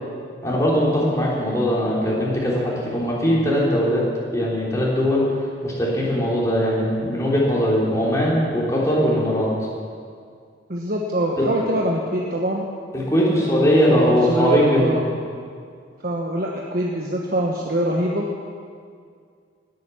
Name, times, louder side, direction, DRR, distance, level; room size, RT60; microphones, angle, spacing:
voice 1, 0.4-4.1 4.3-5.3 5.6-9.5 11.4-11.5 12.9-15.0, equal, 15° left, -6 dB, 3.6 m, -20 dB
voice 2, 10.7-12.6 13.3-15.1 16.0-18.3, right 1 dB, 50° right, -2 dB, 1.3 m, -24 dB
19.0 x 9.1 x 7.2 m, 2.2 s
head